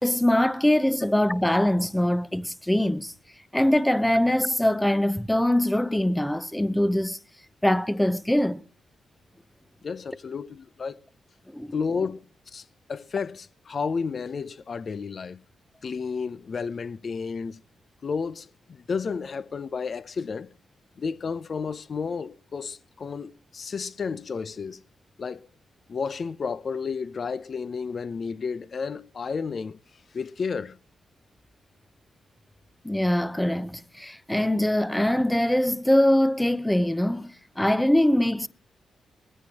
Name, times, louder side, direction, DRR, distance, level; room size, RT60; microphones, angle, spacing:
voice 1, 0.0-3.1 3.5-7.2 7.6-8.6 11.5-11.7 32.8-38.5, left 1 dB, 5° left, 0.7 m, -23 dB
voice 2, 9.8-11.0 11.7-12.2 12.5-15.4 15.8-17.6 18.0-20.5 21.0-24.8 25.2-25.5 25.9-29.8 30.1-30.8, left 5 dB, 55° left, 0.6 m, -32 dB
20.5 x 15.5 x 2.9 m
cardioid pair, 65°, 0 cm